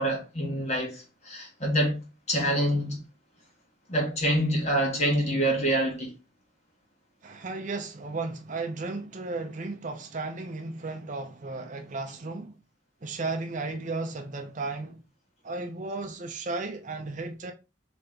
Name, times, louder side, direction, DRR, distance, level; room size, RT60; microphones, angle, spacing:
voice 1, 0.0-3.0 3.9-6.1, equal, 35° left, 1.6 m, -26 dB
voice 2, 7.2-12.6 13.0-15.0 15.4-17.5, right 3 dB, 40° right, 0.5 m, -34 dB
4.0 x 3.4 x 3.5 m
head